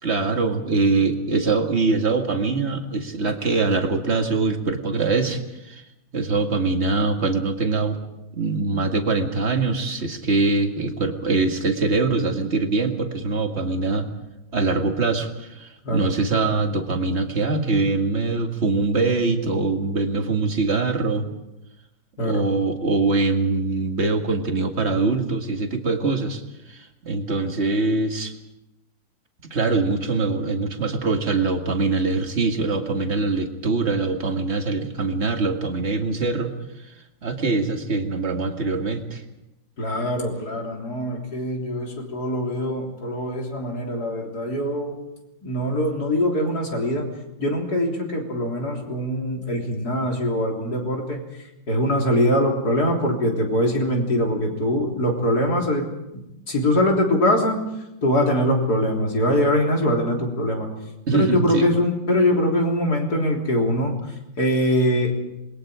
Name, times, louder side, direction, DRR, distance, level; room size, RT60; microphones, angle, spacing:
voice 1, 0.0-5.8 6.1-8.0 8.3-14.1 14.5-21.3 22.2-26.4 26.7-28.3 29.4-36.5 37.2-39.2 60.2-60.3 61.1-61.7, right 3 dB, 30° right, 4 dB, 2.1 m, -23 dB
voice 2, 39.8-45.0 45.4-47.1 47.4-55.9 56.1-56.2 56.5-57.7 58.0-60.7 61.1-65.2, left 1 dB, 45° left, 1 dB, 4.0 m, -23 dB
27.5 x 21.5 x 5.0 m, 0.91 s
omnidirectional pair, 2.3 m